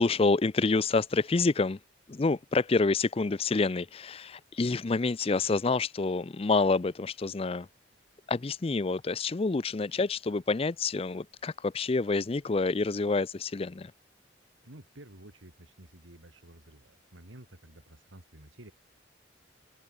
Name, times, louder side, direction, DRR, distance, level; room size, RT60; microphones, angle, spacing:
voice 1, 0.0-1.8 2.1-7.7 8.3-13.9, left 3 dB, 30° left, 0.5 m, -28 dB
voice 2, 14.6-18.7, right 1 dB, 85° right, 3.7 m, -51 dB
open air
head